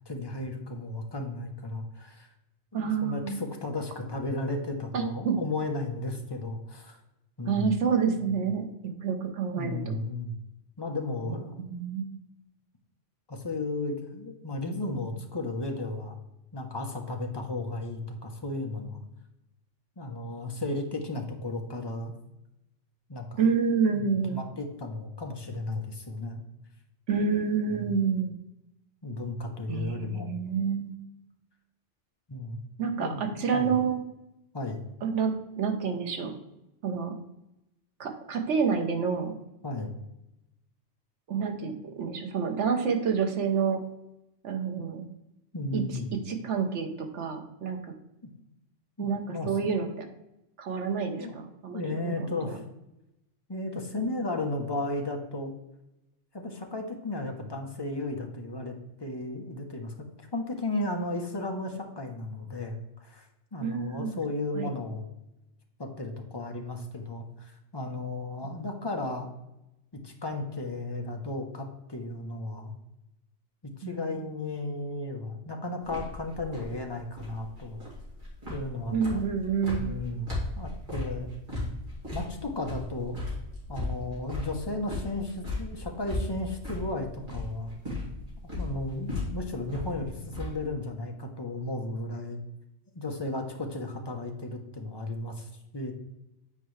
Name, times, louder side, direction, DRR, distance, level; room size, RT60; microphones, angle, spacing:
voice 1, 0.1-2.3 2.7-7.0 7.4-7.7 8.2-8.3 9.6-10.3 10.8-11.7 13.3-16.2 16.5-19.0 20.0-22.1 23.1-23.4 23.9-26.4 27.8-27.9 29.0-30.3 32.3-33.3 33.5-33.7 34.5-34.8 39.6-39.9 45.5-46.1 48.2-48.3 49.0-49.5 51.2-51.4 51.7-52.6 53.5-55.5 56.3-60.1 60.3-65.1 65.8-69.3 70.0-72.7 73.8-77.8 78.5-79.2 79.8-81.3 82.1-83.2 83.7-87.7 88.5-92.4 92.9-95.9, left 2 dB, 25° left, 3 dB, 0.8 m, -34 dB
voice 2, 2.7-3.4 4.9-5.4 7.5-10.0 11.6-12.1 23.4-24.4 27.1-28.4 29.7-30.9 32.8-34.0 35.0-36.3 36.8-37.2 38.0-39.4 41.3-43.8 44.4-45.1 45.7-45.8 46.3-47.8 49.0-50.0 50.6-52.3 63.6-64.2 64.5-64.7 73.8-74.3 78.9-79.9, right 6 dB, 80° right, 5 dB, 1.2 m, -28 dB
sound 1, 75.8-90.7, left 2 dB, 45° right, 2.6 m, -37 dB
8.8 x 4.6 x 3.2 m, 0.90 s
omnidirectional pair, 1.2 m